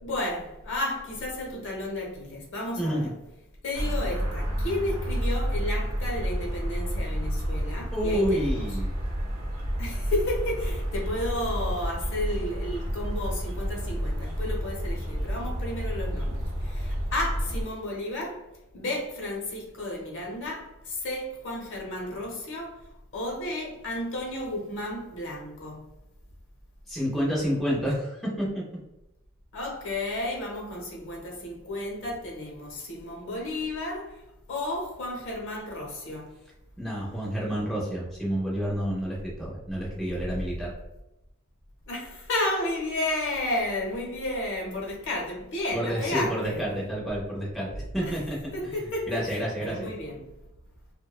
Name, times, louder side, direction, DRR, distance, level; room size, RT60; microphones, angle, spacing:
voice 1, 0.0-3.1 3.6-8.8 9.8-25.9 29.5-34.2 34.5-36.4 40.3-40.5 41.9-46.7 48.0-48.2 48.5-50.3, left 1 dB, 60° left, 0.7 m, -32 dB
voice 2, 2.8-3.1 7.9-8.9 26.9-28.6 36.8-40.7 45.7-48.8 49.1-49.9, equal, ahead, 0.5 m, -29 dB
sound 1, 3.7-17.6, equal, 85° right, 0.7 m, -30 dB
2.6 x 2.1 x 2.3 m
head